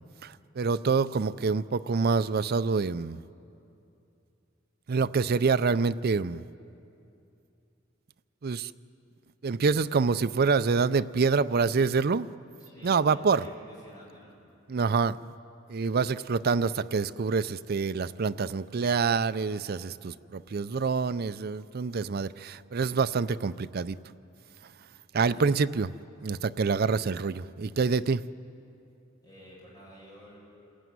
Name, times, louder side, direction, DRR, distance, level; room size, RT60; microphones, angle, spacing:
voice 1, 0.2-3.2 4.9-6.4 8.4-8.7 9.4-12.3 12.8-13.4 14.7-15.2 15.7-24.0 25.1-25.9 26.2-28.2, right 4 dB, 50° right, 14 dB, 0.5 m, -26 dB
voice 2, 12.6-14.4 25.2-25.6 29.2-30.4, equal, 20° left, -5 dB, 7.5 m, -50 dB
27.5 x 15.0 x 9.5 m, 2.7 s
head